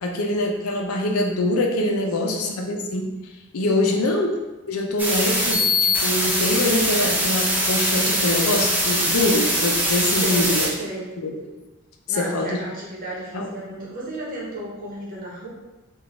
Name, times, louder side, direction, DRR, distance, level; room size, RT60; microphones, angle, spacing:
voice 1, 0.0-3.1 3.5-4.3 4.7-10.7 11.2-11.3 12.1-12.6 13.3-13.5, left 1 dB, 85° left, 2 dB, 0.5 m, -24 dB
voice 2, 2.2-2.6 3.7-4.0 10.0-11.2 12.1-15.5, right 1 dB, 40° right, -5 dB, 1.0 m, -34 dB
sound 1, 5.0-10.7, equal, 5° right, 0.6 m, -22 dB
3.8 x 2.3 x 3.5 m, 1.1 s
head